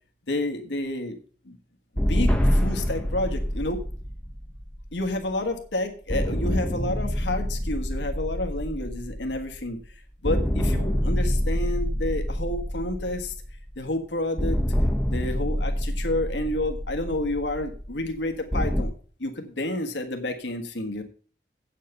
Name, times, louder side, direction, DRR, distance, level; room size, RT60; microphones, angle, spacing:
voice 1, 0.3-1.1 1.4-1.6 2.1-3.8 4.9-9.8 10.2-13.3 13.8-14.6 15.0-18.9 19.2-21.0, left 1 dB, 90° left, 5 dB, 1.5 m, -30 dB
sound 1, 2.0-5.5 6.1-9.9 10.2-13.9 14.4-18.8, equal, 5° left, 0.9 m, -27 dB
8.4 x 7.5 x 5.5 m, 0.41 s
head